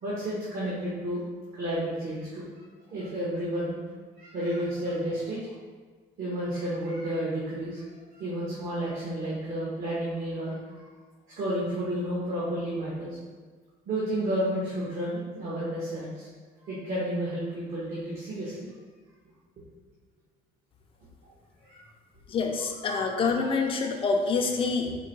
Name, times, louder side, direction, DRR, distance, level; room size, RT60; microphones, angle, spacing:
voice 1, 0.0-1.2 1.6-2.5 2.9-3.7 4.2-5.5 6.2-10.9 11.4-13.2 13.9-16.3 16.6-18.7 21.6-21.8 22.6-23.5, right 1 dB, 55° right, -8 dB, 1.3 m, -31 dB
voice 2, 22.3-24.9, left 4 dB, 30° left, 2 dB, 0.5 m, -26 dB
4.6 x 2.2 x 4.5 m, 1.4 s
cardioid pair, 110°, 17 cm